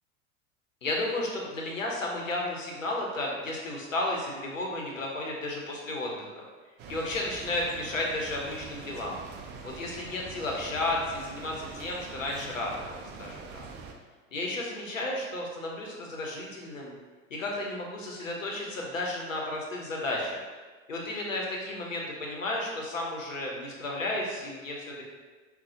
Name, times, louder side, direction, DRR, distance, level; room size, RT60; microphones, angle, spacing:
voice 1, 0.8-6.3 6.9-9.2 9.6-13.6 14.3-17.0 17.3-20.4 20.9-25.0, left 2 dB, 85° left, -1 dB, 0.9 m, -33 dB
sound 1, 6.8-13.9, right 4 dB, 30° right, 0.4 m, -44 dB
5.2 x 2.3 x 2.7 m, 1.4 s
figure-of-eight pair, 80°, 38 cm